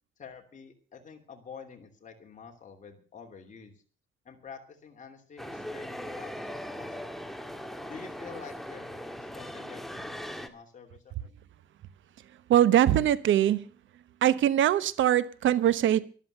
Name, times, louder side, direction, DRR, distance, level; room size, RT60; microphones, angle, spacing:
voice 1, 0.2-3.7 4.2-7.1 7.9-8.9 9.2-11.3, left 6 dB, 40° left, 3.0 m, -48 dB
sound 1, 5.4-10.5, equal, ahead, 1.8 m, -39 dB
voice 2, 12.5-13.7 14.2-16.0, right 11 dB, 75° right, 1.1 m, -22 dB
14.0 x 12.0 x 6.7 m
cardioid pair, 90°, 20 cm